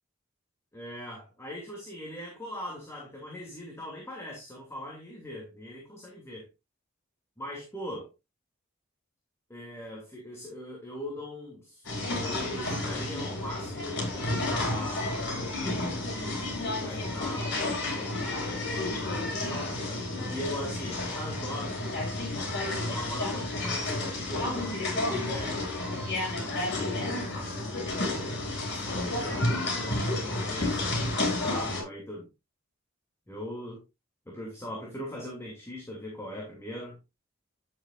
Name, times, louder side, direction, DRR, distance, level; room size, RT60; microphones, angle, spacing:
voice 1, 0.7-6.5 7.4-8.1 9.5-11.9 12.2-15.2 15.9-21.8 22.7-25.7 26.4-27.5 28.5-32.3 33.3-33.8 34.3-37.0, left 1 dB, 15° left, 2.7 m, -41 dB
sound 1, 11.8-31.8, left 2 dB, 55° left, 4.7 m, -31 dB
10.5 x 8.0 x 2.5 m
head